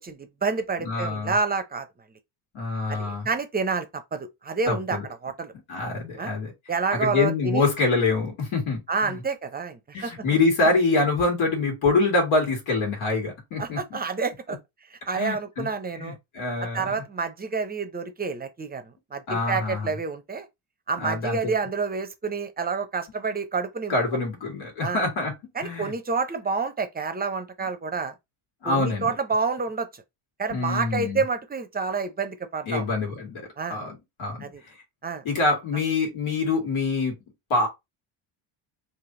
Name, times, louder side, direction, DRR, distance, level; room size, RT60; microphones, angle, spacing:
voice 1, 0.0-1.9 2.9-5.5 6.2-6.3 6.7-7.7 8.9-10.1 13.6-14.6 14.9-16.2 16.6-20.5 20.9-23.9 24.8-25.0 25.6-28.1 28.6-30.0 30.4-32.9 33.6-33.8 34.4-34.6 35.0-35.2, right 4 dB, 20° right, 0.6 m, -29 dB
voice 2, 0.8-1.3 2.5-3.3 4.7-5.0 5.7-6.5 7.0-9.1 9.9-13.8 15.1-15.7 16.0-16.9 19.3-19.9 21.0-21.5 23.9-25.3 25.6-25.9 28.6-29.1 30.5-31.2 32.7-33.4 33.7-34.4 35.2-37.2 37.5-37.7, left 3 dB, 80° left, 1.8 m, -25 dB
3.3 x 2.6 x 3.7 m
cardioid pair, 125°, 48 cm